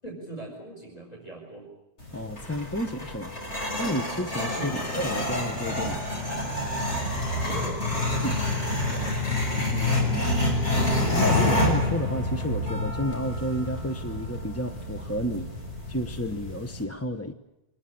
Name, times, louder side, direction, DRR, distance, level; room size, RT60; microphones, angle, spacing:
voice 1, 0.0-1.7 4.5-4.8 7.4-9.3, right 2 dB, 35° left, 1 dB, 5.6 m, -41 dB
sound 1, 2.0-16.8, left 1 dB, 80° left, 6.9 m, -28 dB
voice 2, 2.1-3.4 3.8-6.1 8.2-8.4 8.9-10.5 11.1-15.6 15.9-17.3, left 1 dB, 15° left, 7 dB, 0.9 m, -31 dB
25.5 x 20.5 x 8.6 m, 0.95 s
omnidirectional pair, 1.1 m